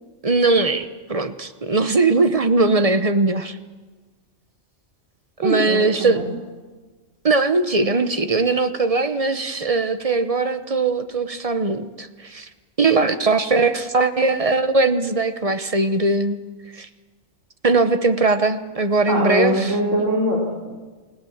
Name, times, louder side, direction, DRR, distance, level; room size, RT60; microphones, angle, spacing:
voice 1, 0.2-3.6 5.4-6.2 7.2-12.5 12.8-16.4 16.7-16.9 17.6-19.7, right 3 dB, 30° right, 10 dB, 1.0 m, -20 dB
voice 2, 5.4-6.3 19.1-20.7, equal, 65° right, -3 dB, 4.1 m, -22 dB
29.5 x 17.5 x 7.3 m, 1.4 s
omnidirectional pair, 1.4 m